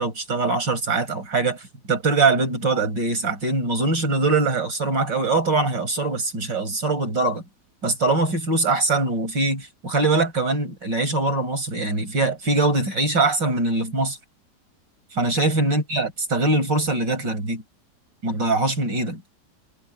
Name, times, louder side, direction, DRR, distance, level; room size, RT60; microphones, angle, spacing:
voice 1, 0.0-7.4 7.8-14.2 15.1-17.6 18.2-19.2, right 3 dB, 80° right, 6.6 m, -22 dB
omnidirectional pair, 1.9 m